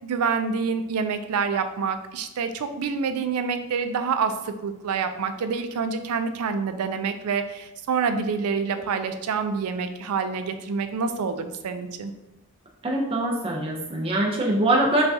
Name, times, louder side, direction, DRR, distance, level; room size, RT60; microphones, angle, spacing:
voice 1, 0.0-12.1, right 5 dB, 85° right, 9 dB, 0.4 m, -27 dB
voice 2, 12.8-15.0, right 1 dB, 25° right, -2 dB, 0.5 m, -23 dB
5.5 x 2.3 x 2.6 m, 0.92 s
head